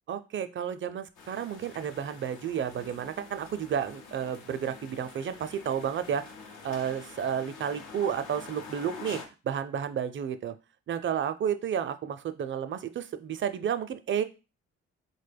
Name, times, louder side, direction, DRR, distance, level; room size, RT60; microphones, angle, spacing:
voice 1, 0.1-6.3 6.6-10.5 10.9-14.2, right 8 dB, 40° right, 11 dB, 0.4 m, -31 dB
sound 1, 1.2-9.3, left 4 dB, 75° left, 0.8 m, -47 dB
3.9 x 2.2 x 3.4 m, 0.30 s
supercardioid pair, 65°, 30 cm